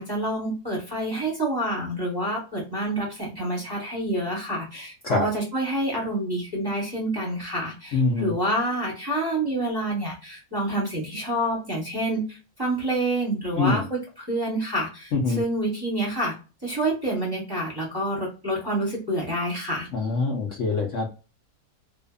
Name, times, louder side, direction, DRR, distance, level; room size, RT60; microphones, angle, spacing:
voice 1, 0.0-16.3 16.6-19.9, right 1 dB, 15° right, -4 dB, 0.9 m, -28 dB
voice 2, 7.9-8.3 13.6-13.9 15.1-15.4 19.9-21.1, left 3 dB, 65° left, -1 dB, 0.8 m, -24 dB
2.7 x 2.4 x 2.3 m, 0.32 s
omnidirectional pair, 1.8 m